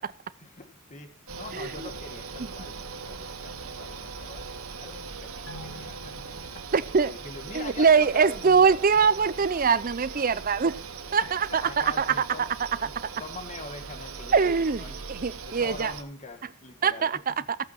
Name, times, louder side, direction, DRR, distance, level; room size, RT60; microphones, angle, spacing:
voice 1, 0.4-4.5 4.8-5.3 5.6-6.6 7.1-8.8 11.2-12.5 12.8-12.9 13.2-15.0 15.5-17.1, left 3 dB, 35° left, 7 dB, 1.6 m, -43 dB
sound 1, 1.3-16.0, right 5 dB, 75° right, 1.3 m, -40 dB
voice 2, 1.5-1.9 6.7-7.1 7.5-10.8 11.1-12.1 14.3-14.8 15.1-15.9 16.8-17.3, right 5 dB, 40° right, 16 dB, 0.6 m, -23 dB
sound 2, 2.8-11.8, left 2 dB, 85° left, 3.2 m, -55 dB
sound 3, 5.5-8.4 8.7-8.8, left 1 dB, 65° left, 1.4 m, -49 dB
14.5 x 8.5 x 4.3 m, 0.36 s
head